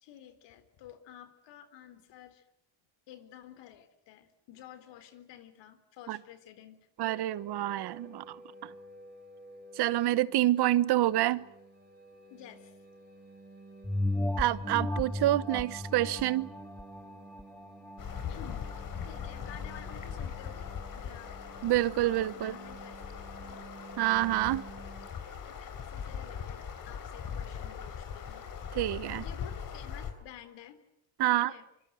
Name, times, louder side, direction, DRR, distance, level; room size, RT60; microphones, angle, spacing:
voice 1, 0.0-2.5 3.1-6.9 12.3-12.8 18.3-18.7 19.0-20.6 20.9-21.3 22.3-23.6 25.5-28.5 29.2-30.8 31.3-31.6, left 11 dB, 75° left, 3.7 m, -51 dB
sound 1, 7.0-25.1, right 3 dB, 25° right, 4.6 m, -52 dB
voice 2, 7.0-8.7 9.8-11.5 14.4-16.5 21.6-22.6 24.0-24.6 28.7-29.2 31.2-31.5, right 15 dB, 60° right, 1.1 m, -27 dB
sound 2, 13.8-18.8 19.3-19.4, left 1 dB, 5° left, 1.4 m, -35 dB
sound 3, 18.0-30.1, left 7 dB, 50° left, 4.4 m, -40 dB
25.5 x 25.0 x 7.8 m
cardioid pair, 115°, 44 cm